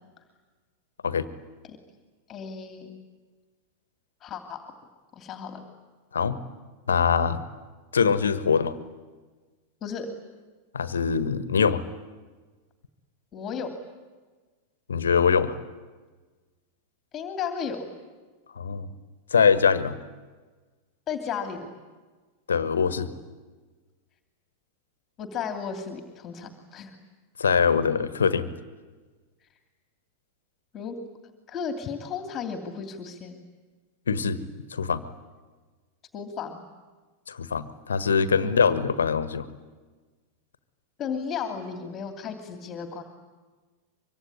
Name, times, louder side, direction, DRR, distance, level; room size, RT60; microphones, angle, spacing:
voice 1, 2.3-2.9 4.2-4.6 5.2-5.6 9.8-10.1 13.3-13.7 17.1-17.9 21.1-21.7 25.2-27.0 30.7-30.9 31.5-33.4 36.1-36.6 38.4-38.6 41.0-43.0, left 6 dB, 30° left, 6 dB, 2.7 m, -34 dB
voice 2, 6.9-7.4 7.9-8.7 10.7-11.8 14.9-15.6 18.6-18.9 19.3-20.0 22.5-23.1 27.4-28.5 34.1-34.4 34.7-35.0 37.3-39.5, left 6 dB, 70° left, 14 dB, 1.4 m, -23 dB
24.5 x 24.0 x 9.9 m, 1.3 s
figure-of-eight pair, 90°, 0 cm